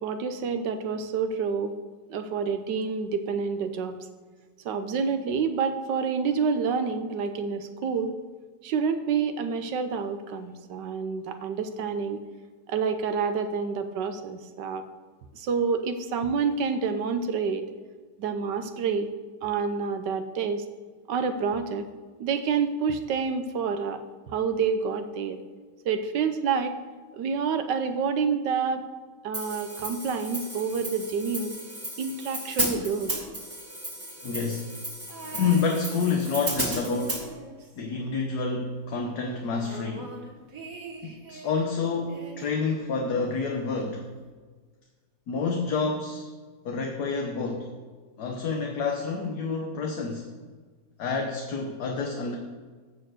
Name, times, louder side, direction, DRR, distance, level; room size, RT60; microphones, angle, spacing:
voice 1, 0.0-1.7 2.1-4.0 4.6-8.1 8.6-12.2 12.7-14.8 15.3-17.6 18.2-19.1 19.4-20.6 21.1-21.9 22.2-24.0 24.3-25.4 25.8-26.8 27.1-28.9 29.2-31.6 32.0-33.1, right 5 dB, 80° right, 8 dB, 1.4 m, -28 dB
Hi-hat, 29.3-37.2, right 1 dB, 10° right, 2.0 m, -34 dB
voice 2, 34.2-34.7 35.2-37.3 37.8-40.1 41.0-44.1 45.3-46.3 46.6-47.7 48.2-50.3 51.0-52.4, left 4 dB, 65° left, 2 dB, 1.5 m, -28 dB
sound 1, 35.1-36.4 36.7-38.6 38.9-39.0 39.3-41.7 42.1-43.3 44.2-44.3, right 3 dB, 50° right, 1.7 m, -44 dB
12.5 x 4.5 x 7.7 m, 1.4 s
omnidirectional pair, 1.9 m